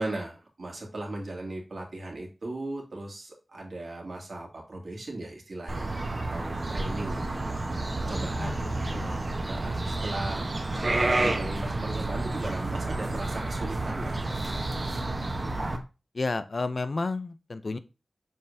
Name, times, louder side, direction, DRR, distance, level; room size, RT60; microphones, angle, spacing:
voice 1, 0.0-5.9 6.3-7.4 8.0-8.5 9.5-10.4 11.0-14.6, right 2 dB, 75° right, -1 dB, 2.6 m, -37 dB
sound 1, 5.7-15.8, right 2 dB, 45° right, 1.1 m, -30 dB
voice 2, 8.4-9.2 15.4-15.7 16.1-17.8, left 3 dB, 60° left, 12 dB, 0.6 m, -32 dB
7.2 x 5.5 x 2.8 m, 0.30 s
wide cardioid pair, 65°, 0 cm